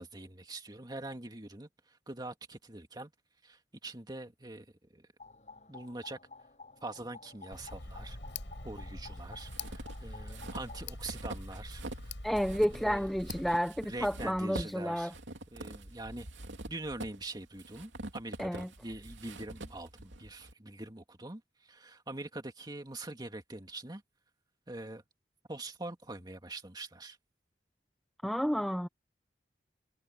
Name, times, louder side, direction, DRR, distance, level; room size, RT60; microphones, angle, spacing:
voice 1, 0.0-3.1 3.4-4.7 4.9-5.1 5.7-6.2 6.8-8.2 8.6-13.1 13.9-15.1 15.5-16.3 16.7-24.0 24.7-25.0 25.5-27.2, right 2 dB, 25° right, 2.4 m, -44 dB
sound 1, 5.2-10.9, left 3 dB, 40° left, 7.9 m, -52 dB
Tick, 7.5-13.5, left 2 dB, 85° left, 6.4 m, -44 dB
sound 2, 9.1-12.1 12.4-20.5, right 2 dB, 85° right, 2.9 m, -45 dB
voice 2, 12.2-15.1 18.4-18.7 28.2-28.9, equal, ahead, 0.5 m, -31 dB
head